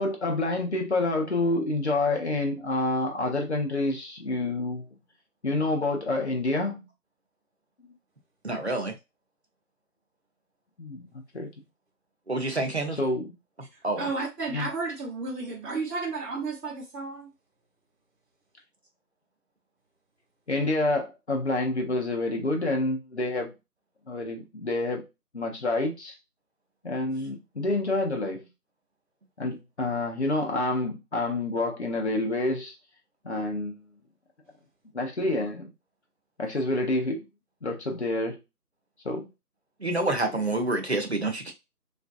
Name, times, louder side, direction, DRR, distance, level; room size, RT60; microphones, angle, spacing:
voice 1, 0.0-4.9 5.4-6.9 10.8-11.5 13.0-13.3 14.5-14.7 20.5-23.5 24.1-25.0 25.4-26.1 26.8-28.5 29.4-32.7 33.2-33.7 34.9-35.7 36.4-37.2 37.6-38.4 39.0-39.3, left 2 dB, 45° left, 0.6 m, -28 dB
voice 2, 8.4-9.0 12.3-13.0 13.6-14.1 39.8-41.5, right 2 dB, 45° right, 0.5 m, -28 dB
voice 3, 14.0-17.3, right 3 dB, 85° right, 0.9 m, -32 dB
2.5 x 2.3 x 2.4 m
figure-of-eight pair, 170°, 47 cm